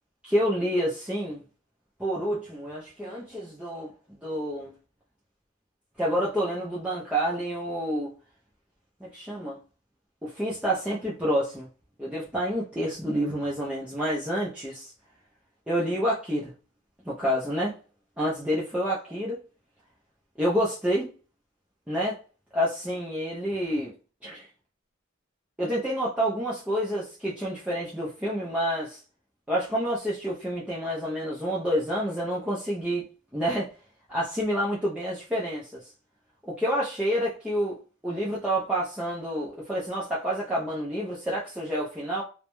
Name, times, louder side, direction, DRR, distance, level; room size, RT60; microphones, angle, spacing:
voice 1, 0.2-1.4 2.0-3.9 4.2-4.7 6.0-8.1 9.0-9.6 10.2-11.7 12.0-14.9 15.7-16.5 17.1-17.8 18.2-19.4 20.4-21.1 21.9-22.2 22.5-23.9 24.2-24.5 25.6-29.0 29.5-33.0 33.3-33.7 34.1-35.9 36.5-37.8 38.0-42.2, equal, 5° right, 0.5 m, -28 dB
2.3 x 2.1 x 2.9 m
head